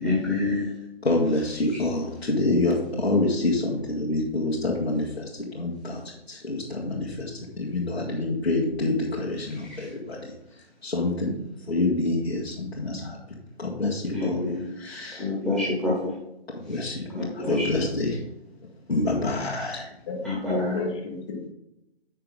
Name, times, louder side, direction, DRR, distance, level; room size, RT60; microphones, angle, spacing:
voice 1, 0.0-0.7 14.1-14.6 15.2-15.9 17.1-17.7 20.2-20.7, left 2 dB, ahead, -7 dB, 1.5 m, -26 dB
voice 2, 1.0-11.3 11.7-14.4 14.7-15.3 16.5-17.0 17.3-18.2 18.9-19.9, left 2 dB, 70° left, -7 dB, 2.1 m, -27 dB
voice 3, 20.1-21.5, left 3 dB, 25° left, 3 dB, 1.3 m, -31 dB
8.4 x 6.5 x 3.8 m, 0.87 s
figure-of-eight pair, 145°, 32 cm